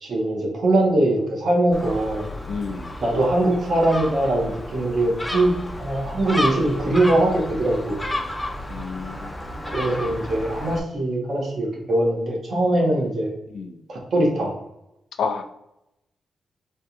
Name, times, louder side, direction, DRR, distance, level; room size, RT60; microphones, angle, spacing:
voice 1, 0.0-2.3 3.0-8.1 9.7-13.3 13.9-14.5, right 1 dB, 65° right, -1 dB, 1.1 m, -22 dB
Gull seagull, 1.7-10.8, left 1 dB, 15° left, 0.5 m, -32 dB
voice 2, 2.5-3.0 8.7-9.3 13.5-13.8 15.2-15.4, left 5 dB, 80° left, 7 dB, 0.3 m, -30 dB
3.4 x 2.3 x 2.8 m, 0.87 s
cardioid pair, 85°, 0 cm